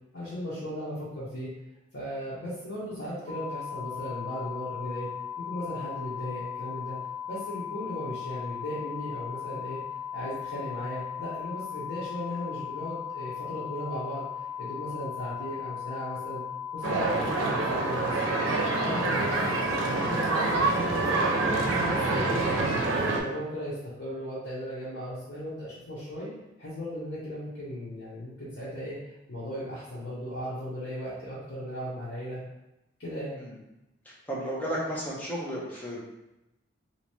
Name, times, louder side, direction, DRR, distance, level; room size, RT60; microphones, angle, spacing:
voice 1, 0.1-1.5 1.9-5.1 5.4-7.0 7.3-9.8 10.1-14.2 14.6-16.4 16.7-18.4 18.8-22.6 23.0-26.3 26.6-29.0 29.3-32.4 33.0-33.4, equal, 70° left, -11 dB, 1.1 m, -36 dB
sound 1, 3.3-22.6, left 8 dB, 40° left, 1.5 m, -37 dB
sound 2, 16.8-23.2, right 3 dB, 85° right, 0.6 m, -27 dB
voice 2, 34.3-36.0, equal, 10° left, -6 dB, 0.7 m, -33 dB
3.2 x 2.9 x 3.0 m, 0.92 s
head